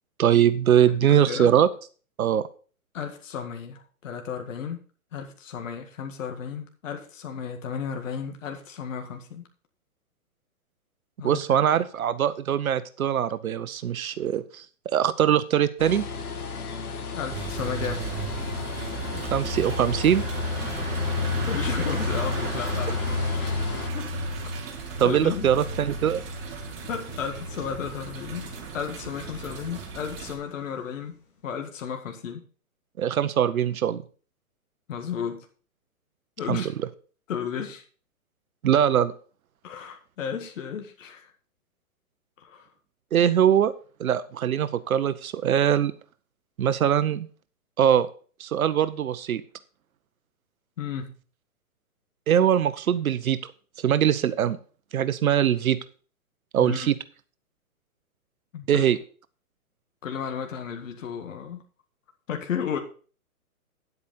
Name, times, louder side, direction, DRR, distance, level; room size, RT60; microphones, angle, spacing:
voice 1, 0.2-1.7 2.2-2.5 11.2-16.0 19.1-20.2 25.0-26.2 33.0-34.0 36.5-36.7 38.6-39.1 43.1-43.7 44.0-45.9 46.6-47.3 47.8-48.1 48.4-49.4 52.3-53.4 53.8-54.6 54.9-55.8 56.5-57.0 58.7-59.0, right 9 dB, 70° right, 14 dB, 0.9 m, -22 dB
voice 2, 0.9-1.5 2.9-4.8 5.1-9.5 11.2-11.4 17.2-18.0 18.4-18.6 21.5-24.1 25.0-25.5 26.9-31.2 31.4-32.4 34.9-35.5 36.4-36.7 37.3-37.8 39.6-41.3 42.4-42.7 50.8-51.2 56.6-56.9 58.5-58.9 60.0-61.6 62.3-62.8, left 7 dB, 60° left, 4 dB, 1.9 m, -34 dB
sound 1, 15.8-23.9, left 4 dB, 85° left, 1.9 m, -35 dB
sound 2, 17.3-30.4, equal, 40° right, 2.5 m, -32 dB
sound 3, 26.7-31.7, left 3 dB, 40° left, 3.6 m, -51 dB
10.0 x 8.3 x 4.3 m, 0.39 s
hypercardioid pair, 150°, 44 cm